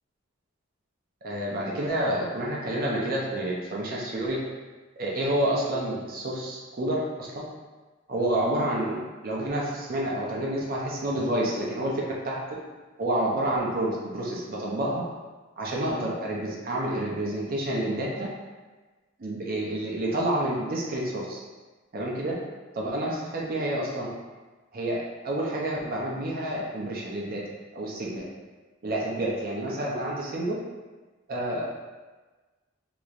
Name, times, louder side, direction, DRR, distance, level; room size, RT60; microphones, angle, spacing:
voice 1, 1.2-4.4 5.0-7.4 8.1-9.0 9.2-12.4 13.0-15.0 15.6-18.3 19.2-21.4 21.9-22.4 22.7-24.1 24.7-27.4 27.7-28.2 28.8-30.6 31.3-31.7, right 1 dB, 45° right, -4 dB, 0.6 m, -29 dB
4.7 x 2.9 x 2.5 m, 1.3 s
head